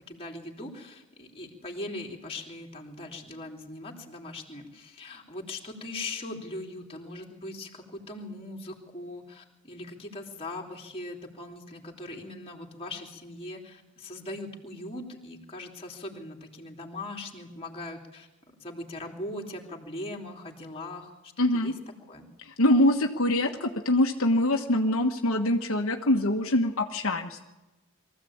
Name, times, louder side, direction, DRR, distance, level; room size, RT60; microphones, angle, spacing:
voice 1, 0.1-18.3 18.6-21.7 22.1-22.3, left 2 dB, 25° left, 1 dB, 3.2 m, -40 dB
voice 2, 21.4-21.7 22.4-27.4, left 1 dB, 70° left, 2 dB, 1.5 m, -24 dB
23.5 x 15.0 x 8.7 m, 1.0 s
head